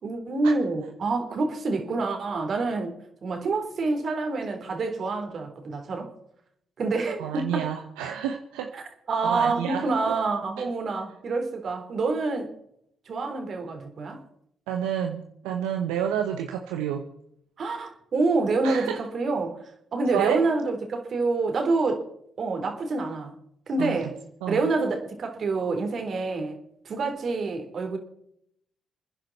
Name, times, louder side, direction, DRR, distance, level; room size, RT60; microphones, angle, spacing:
voice 1, 0.0-6.1 6.8-7.7 8.7-8.8 9.1-12.5 13.1-14.2 17.6-19.6 19.9-22.0 22.4-23.3 23.7-24.1 24.5-26.6 26.9-28.0, right 3 dB, 55° right, 4 dB, 3.6 m, -27 dB
voice 2, 7.2-8.7 9.2-10.1 10.6-10.7 14.7-17.0 18.6-19.0 20.1-20.4 23.8-24.1 24.4-24.7, right 9 dB, 85° right, 5 dB, 1.0 m, -29 dB
28.5 x 10.5 x 4.2 m, 0.72 s
hypercardioid pair, 45°, 0 cm